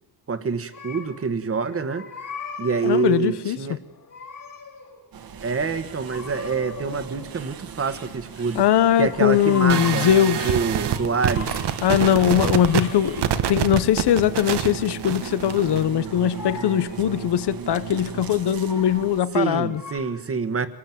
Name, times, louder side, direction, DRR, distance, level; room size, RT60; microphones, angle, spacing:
voice 1, 0.3-2.0 2.6-3.8 5.4-8.6 9.0-10.1 10.4-11.7 12.1-12.4 19.3-20.7, right 5 dB, 35° right, 1.4 m, -26 dB
sound 1, 0.7-1.3 1.6-3.2 3.9-5.0 6.0-7.4 8.9-10.2 10.7-11.9 12.4-13.7 15.5-17.1 17.9-19.1 19.6-20.0, left 5 dB, 55° left, 5.4 m, -40 dB
voice 2, 2.8-3.6 8.5-10.5 11.8-19.8, left 10 dB, 85° left, 1.0 m, -21 dB
sound 2, 5.1-19.2, right 6 dB, 60° right, 1.7 m, -38 dB
sound 3, 9.7-15.8, right 9 dB, 90° right, 1.4 m, -26 dB
25.0 x 19.5 x 9.3 m
wide cardioid pair, 160°, 39 cm